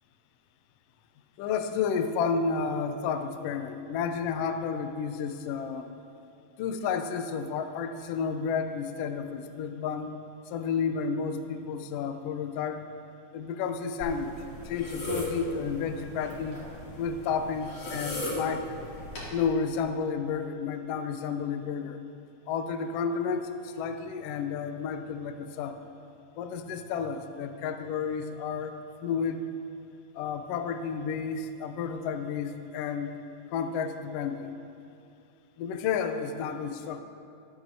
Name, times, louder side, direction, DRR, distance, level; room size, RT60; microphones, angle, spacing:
voice 1, 1.4-5.9 6.6-10.1 10.5-12.8 13.3-14.3 14.6-16.6 17.0-18.7 19.3-22.0 22.5-25.8 26.4-29.4 30.1-33.2 33.5-34.5 35.6-37.0, left 6 dB, 80° left, 8 dB, 1.4 m, -31 dB
sound 1, 14.0-19.3, left 1 dB, 55° left, 3.6 m, -37 dB
13.5 x 12.0 x 2.7 m, 2.6 s
omnidirectional pair, 3.4 m